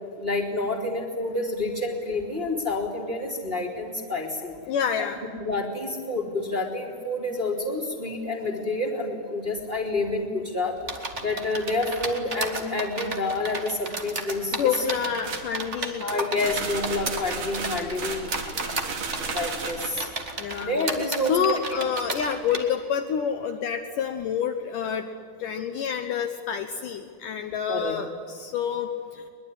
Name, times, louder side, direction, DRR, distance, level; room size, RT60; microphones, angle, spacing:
voice 1, 0.2-4.6 5.0-5.1 5.3-14.8 16.0-18.3 19.2-20.1 20.6-21.6 27.7-27.9, left 2 dB, 15° right, -3 dB, 2.6 m, -28 dB
voice 2, 4.7-5.2 14.6-16.1 20.4-20.7 21.3-25.1 25.4-29.2, left 7 dB, 70° left, 6 dB, 2.2 m, -28 dB
sound 1, 10.9-22.6, right 3 dB, 35° right, 1.0 m, -33 dB
sound 2, 15.2-15.5 16.3-19.9, right 4 dB, 55° right, 3.9 m, -33 dB
22.5 x 21.0 x 9.8 m, 2.2 s
omnidirectional pair, 4.5 m